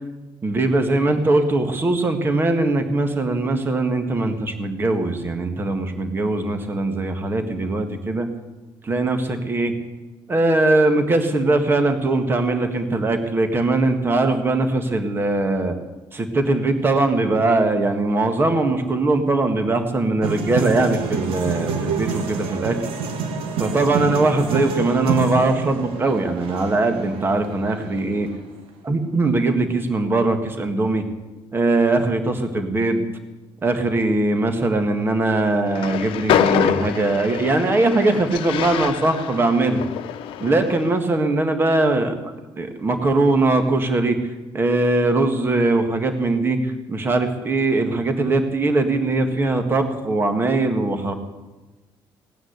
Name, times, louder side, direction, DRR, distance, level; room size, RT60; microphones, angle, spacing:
voice 1, 0.4-8.3 8.8-9.7 10.3-15.7 16.1-22.7 23.6-28.3 28.8-31.0 31.5-33.0 33.6-39.8 40.4-44.2 44.5-51.1, right 2 dB, 25° right, 7 dB, 1.7 m, -21 dB
sound 1, 20.2-28.3, right 6 dB, 80° right, 2.0 m, -28 dB
Train, 35.7-40.9, left 10 dB, 75° left, 0.9 m, -25 dB
18.0 x 9.6 x 8.1 m, 1.2 s
cardioid pair, 150°, 9 cm